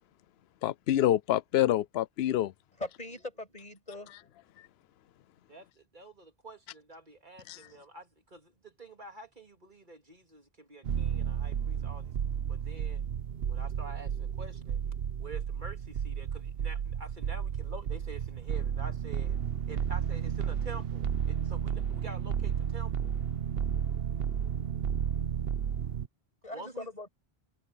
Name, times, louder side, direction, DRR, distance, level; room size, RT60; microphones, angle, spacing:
voice 1, 0.6-2.5 7.5-7.6, left 13 dB, 80° left, 0.8 m, -27 dB
voice 2, 2.8-4.1 26.4-27.1, left 2 dB, 40° left, 6.5 m, -40 dB
voice 3, 5.5-12.1 12.5-13.0 13.5-14.8 15.2-19.4 19.7-23.1 26.5-26.9, right 2 dB, 50° right, 3.5 m, -48 dB
sound 1, 10.8-26.1, right 8 dB, 70° right, 1.0 m, -32 dB
omnidirectional pair, 1.1 m